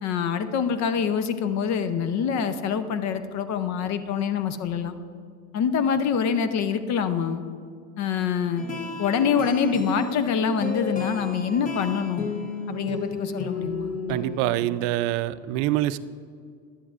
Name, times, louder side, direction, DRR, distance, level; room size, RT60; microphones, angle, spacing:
voice 1, 0.0-4.9 5.5-7.4 8.0-8.7 9.0-12.3 12.7-14.0, left 7 dB, 45° left, 11 dB, 0.6 m, -25 dB
sound 1, 8.6-14.7, left 3 dB, 20° left, 0.9 m, -33 dB
voice 2, 14.1-16.0, right 14 dB, 70° right, 15 dB, 0.5 m, -25 dB
11.5 x 10.0 x 2.4 m, 2.2 s
supercardioid pair, 105°, 38 cm